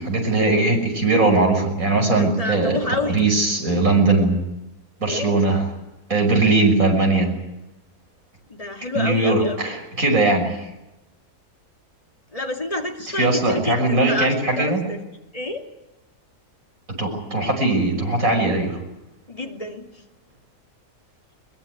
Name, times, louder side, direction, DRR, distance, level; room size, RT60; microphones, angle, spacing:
voice 1, 0.0-2.8 3.1-4.4 5.0-5.6 6.1-7.3 8.9-10.5 13.2-14.9 17.0-18.8, right 2 dB, 60° right, 2 dB, 6.5 m, -19 dB
voice 2, 2.2-3.2 5.0-5.4 8.5-9.6 12.3-15.0 15.3-15.7 19.3-19.9, left 2 dB, 25° left, 2 dB, 2.7 m, -28 dB
22.0 x 22.0 x 9.5 m, 0.97 s
omnidirectional pair, 1.6 m